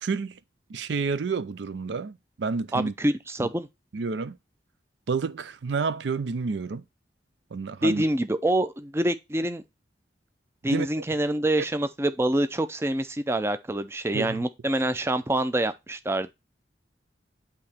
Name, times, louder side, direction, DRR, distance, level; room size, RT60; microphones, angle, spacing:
voice 1, 0.0-0.4 0.7-2.9 3.4-3.5 3.9-4.4 5.1-6.8 7.5-8.0 10.6-10.9 14.1-14.4, right 4 dB, 85° right, 0.5 m, -29 dB
voice 2, 2.7-3.7 7.8-9.6 10.6-16.3, right 1 dB, 15° right, 0.4 m, -26 dB
8.6 x 2.9 x 4.2 m
head